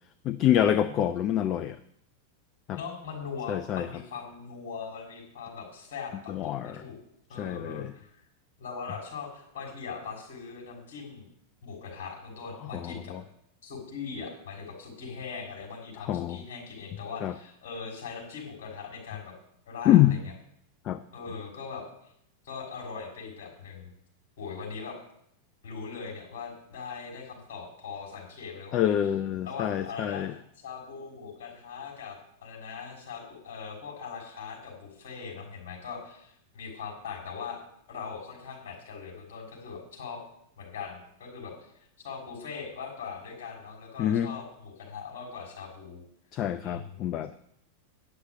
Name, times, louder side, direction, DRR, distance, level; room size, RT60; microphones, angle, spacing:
voice 1, 0.2-1.8 2.7-2.8 3.5-3.9 6.3-6.8 7.4-7.9 12.6-13.2 16.1-16.4 17.2-17.4 19.8-20.2 20.8-21.0 28.7-30.3 44.0-44.3 46.3-47.3, left 11 dB, 35° left, 11 dB, 0.6 m, -26 dB
voice 2, 2.7-7.0 7.3-8.2 8.6-11.3 11.6-13.1 13.6-19.3 19.7-20.2 21.1-21.8 22.4-23.9 24.4-25.0 25.6-28.9 29.4-30.3 30.6-37.6 37.9-40.2 40.6-41.7 42.0-46.0 46.6-47.1, left 5 dB, 55° left, -1 dB, 6.2 m, -40 dB
9.7 x 8.0 x 9.2 m, 0.72 s
figure-of-eight pair, 90°, 0 cm